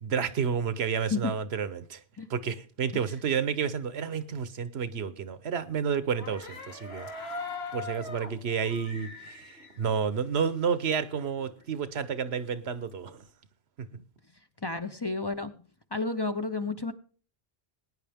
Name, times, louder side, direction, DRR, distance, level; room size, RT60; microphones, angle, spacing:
voice 1, 0.0-2.0 2.3-7.1 7.7-13.2 13.8-14.0, right 6 dB, 85° right, 1.1 m, -30 dB
sound 1, 6.2-10.8 11.1-11.2 11.4-13.2, left 3 dB, 75° left, 2.0 m, -41 dB
voice 2, 14.6-15.5 15.9-16.9, left 3 dB, 30° left, 0.6 m, -31 dB
20.0 x 9.5 x 3.5 m
omnidirectional pair, 1.0 m